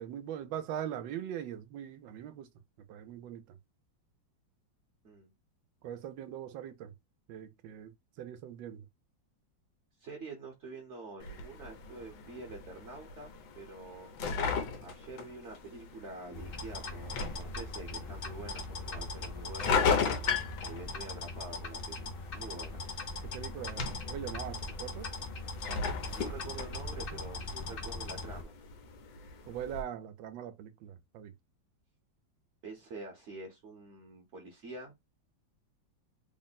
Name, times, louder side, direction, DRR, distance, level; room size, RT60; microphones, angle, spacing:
voice 1, 0.0-2.5 2.8-3.6 5.8-6.9 7.3-8.9 23.2-25.1 29.5-31.3, right 10 dB, 80° right, 1.3 m, -41 dB
voice 2, 10.0-14.1 14.8-20.1 20.6-22.1 22.3-22.8 26.1-28.5 32.6-34.9, right 3 dB, 50° right, 0.9 m, -46 dB
sound 1, 11.2-29.8, left 5 dB, 85° left, 1.6 m, -37 dB
sound 2, 16.3-28.4, left 2 dB, 65° left, 0.5 m, -40 dB
3.7 x 2.1 x 4.0 m
omnidirectional pair, 2.1 m